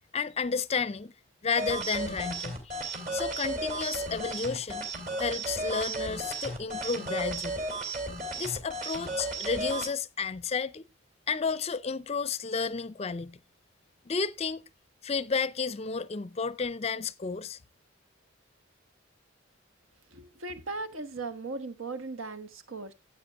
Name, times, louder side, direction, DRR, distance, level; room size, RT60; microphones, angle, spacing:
voice 1, 0.1-1.1 1.4-4.9 5.2-7.6 8.3-10.8 11.3-13.4 14.1-14.6 15.0-17.6, left 5 dB, 30° left, 0.5 m, -32 dB
sound 1, 1.6-9.9, right 2 dB, 45° right, 3.2 m, -34 dB
voice 2, 20.1-22.9, right 3 dB, 75° right, 1.3 m, -38 dB
14.0 x 8.3 x 2.5 m
head